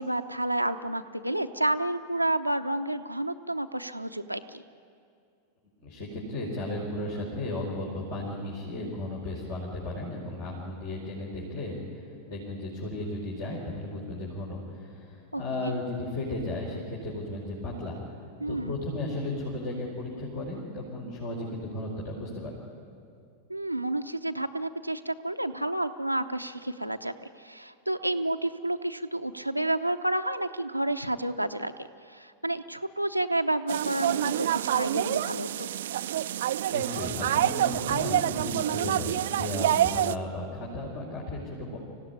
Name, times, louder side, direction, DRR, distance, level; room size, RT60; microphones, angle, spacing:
voice 1, 0.0-4.6 15.3-15.7 18.4-18.7 23.5-35.7, right 1 dB, 90° right, 6 dB, 0.8 m, -30 dB
voice 2, 5.8-18.0 18.5-22.5 36.7-41.8, left 1 dB, 50° left, -5 dB, 4.9 m, -35 dB
sound 1, 33.7-40.2, right 12 dB, 60° right, 0.5 m, -27 dB
25.0 x 16.0 x 9.8 m, 2.5 s
figure-of-eight pair, 90°, 0 cm